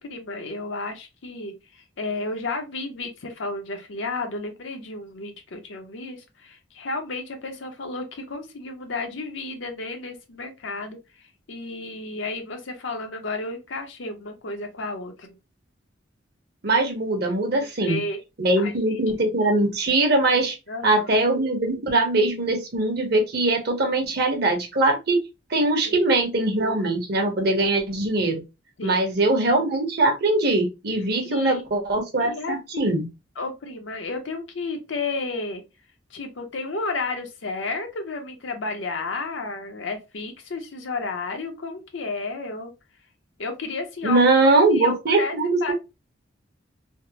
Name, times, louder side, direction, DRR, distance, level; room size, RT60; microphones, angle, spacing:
voice 1, 0.0-11.0 11.5-15.3 17.8-18.2 18.6-19.0 20.7-21.1 25.8-26.1 28.8-29.0 31.2-31.6 32.2-33.0 33.4-35.6 36.1-42.7 43.4-45.4 45.6-45.7, left 3 dB, 85° left, 0.7 m, -32 dB
voice 2, 16.6-18.0 18.4-20.5 20.8-25.2 25.5-28.4 28.8-33.1 44.0-45.7, right 2 dB, 55° right, 0.9 m, -21 dB
3.4 x 2.0 x 2.7 m
head